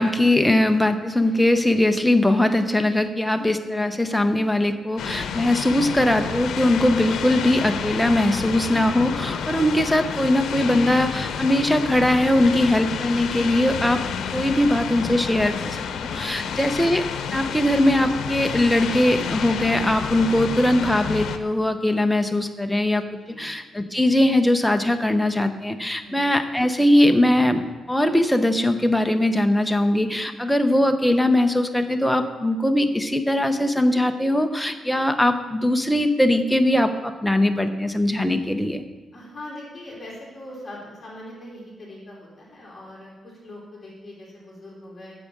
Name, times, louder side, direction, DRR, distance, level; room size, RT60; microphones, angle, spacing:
voice 1, 0.0-14.0 14.3-15.9 16.1-17.0 17.3-23.0 23.4-27.6 27.9-38.8, left 1 dB, 5° left, 6 dB, 0.6 m, -20 dB
sound 1, 5.0-21.4, left 7 dB, 90° left, 0.7 m, -30 dB
voice 2, 16.3-16.7 23.3-23.4 26.0-26.2 39.1-45.1, left 1 dB, 20° left, -5 dB, 3.1 m, -41 dB
8.8 x 6.2 x 8.4 m, 1.3 s
wide cardioid pair, 175°, 0 cm